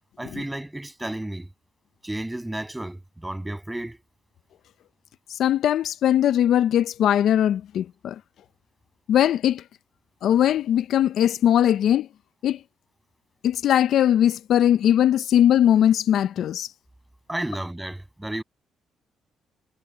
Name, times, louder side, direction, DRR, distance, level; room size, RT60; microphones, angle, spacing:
voice 1, 0.2-1.5 2.0-4.0 17.3-18.4, right 1 dB, 10° right, 7.4 m, -32 dB
voice 2, 5.4-8.1 9.1-9.6 10.2-12.1 12.4-12.6 13.4-16.7, left 10 dB, 75° left, 0.5 m, -20 dB
cardioid pair, 90°, 0 cm